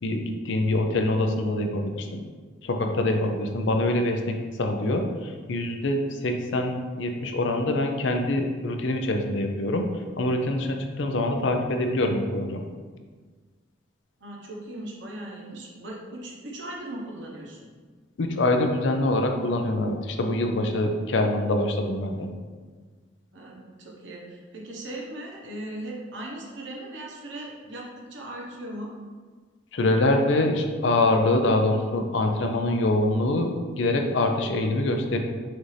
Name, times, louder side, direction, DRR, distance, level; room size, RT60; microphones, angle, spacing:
voice 1, 0.0-2.2 2.6-9.9 10.2-12.7 18.2-22.3 29.7-35.2, left 2 dB, 70° left, 4 dB, 0.5 m, -25 dB
voice 2, 14.2-17.7 23.3-28.9, right 1 dB, 65° right, -2 dB, 0.9 m, -38 dB
6.0 x 2.6 x 3.2 m, 1.5 s
head